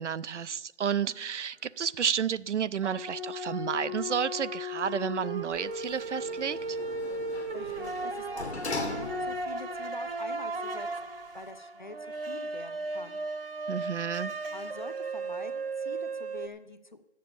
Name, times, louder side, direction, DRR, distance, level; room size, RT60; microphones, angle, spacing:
voice 1, 0.0-6.8 13.7-14.3, right 7 dB, 75° right, 16 dB, 0.6 m, -31 dB
sound 1, 1.0-1.2 2.8-16.5, right 2 dB, 55° right, 1.0 m, -36 dB
Sliding door, 5.5-9.6 10.1-10.2, left 3 dB, 65° left, 1.5 m, -40 dB
voice 2, 7.5-13.2 14.5-17.0, left 2 dB, 40° left, 11 dB, 0.6 m, -45 dB
11.0 x 7.6 x 6.9 m, 0.99 s
hypercardioid pair, 180°, 36 cm